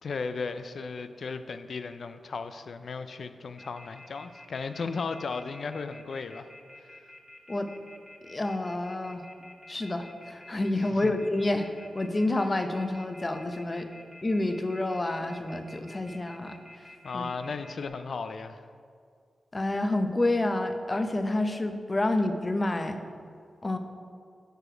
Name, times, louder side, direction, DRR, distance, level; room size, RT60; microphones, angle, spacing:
voice 1, 0.0-6.5 6.8-7.0 10.9-11.1 17.0-18.6, left 4 dB, 70° left, 10 dB, 0.4 m, -36 dB
Telephone, 3.6-17.9, left 2 dB, 10° left, 1.2 m, -50 dB
voice 2, 8.2-9.2 9.7-11.7 11.9-13.9 14.2-16.9 17.1-17.2 19.5-23.0 23.6-23.8, left 2 dB, 30° left, 7 dB, 0.7 m, -28 dB
9.1 x 5.0 x 5.0 m, 2.2 s
cardioid pair, 75°, 0 cm